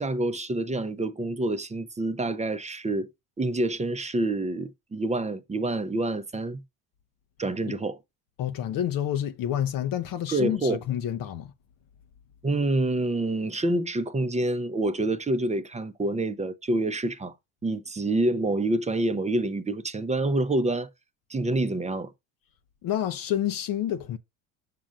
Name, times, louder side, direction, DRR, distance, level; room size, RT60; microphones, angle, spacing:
voice 1, 0.0-3.1 3.4-6.6 7.4-8.0 10.3-10.8 12.4-17.3 17.6-20.9 21.3-22.1, right 2 dB, 15° right, 0.7 m, -27 dB
voice 2, 8.4-11.5 22.8-24.2, left 10 dB, 55° left, 0.7 m, -28 dB
7.6 x 6.0 x 2.5 m
supercardioid pair, 80°, 42 cm